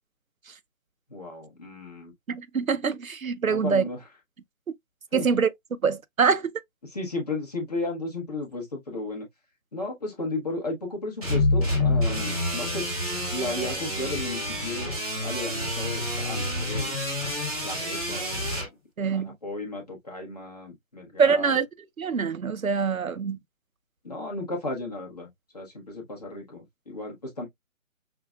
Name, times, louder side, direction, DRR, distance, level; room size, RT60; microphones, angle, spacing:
voice 1, 1.1-2.1 3.5-4.0 5.1-5.3 6.9-9.3 9.7-12.9 13.3-14.9 15.2-16.9 17.6-18.5 19.1-21.5 24.0-27.5, left 2 dB, 30° left, 1.2 m, -34 dB
voice 2, 2.3-3.8 5.1-5.5 5.8-6.5 19.0-19.4 21.2-21.7 22.0-23.4, right 5 dB, 85° right, 0.6 m, -24 dB
sound 1, 11.2-18.7, left 1 dB, 5° right, 1.1 m, -28 dB
5.8 x 2.4 x 2.3 m
figure-of-eight pair, 150°, 40 cm